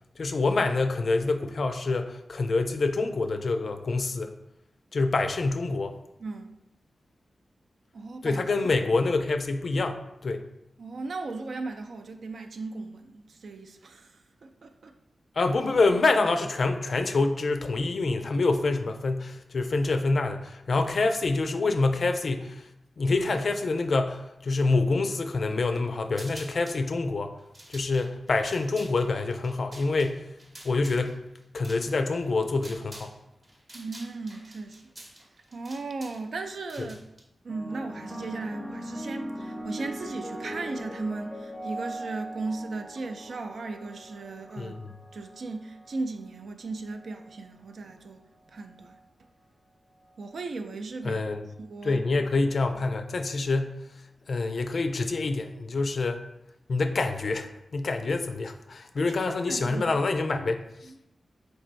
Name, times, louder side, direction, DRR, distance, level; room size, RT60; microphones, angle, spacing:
voice 1, 0.2-4.3 4.9-5.9 8.2-10.5 15.4-22.6 23.0-27.3 27.7-30.3 30.6-31.2 31.5-33.2 44.6-44.8 51.0-51.5 51.8-53.8 54.3-56.2 56.7-60.6, left 3 dB, 65° left, 7 dB, 0.3 m, -26 dB
voice 2, 6.2-6.5 7.9-8.4 10.8-14.9 33.7-34.8 35.5-37.0 37.4-49.3 50.2-51.2 51.6-52.0 59.0-59.1 59.5-59.9 60.8-61.0, right 3 dB, 75° right, 6 dB, 0.3 m, -37 dB
sound 1, 26.1-26.8 27.4-33.2 33.4-37.2, right 1 dB, 50° right, 0.9 m, -48 dB
sound 2, 37.5-46.1 47.0-47.4, equal, 15° left, 0.5 m, -40 dB
4.3 x 3.1 x 2.5 m, 0.88 s
cardioid pair, 65°, 0 cm